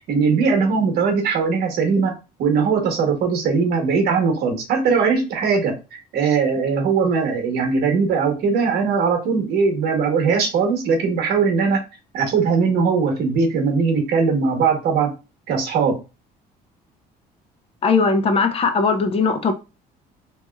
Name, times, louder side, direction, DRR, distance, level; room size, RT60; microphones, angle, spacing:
voice 1, 0.1-2.1 2.4-11.8 12.1-15.1 15.5-16.0, right 5 dB, 70° right, 1.0 m, -20 dB
voice 2, 17.8-19.5, left 4 dB, 35° left, 0.5 m, -19 dB
3.0 x 2.7 x 2.3 m
cardioid pair, 115°, 17 cm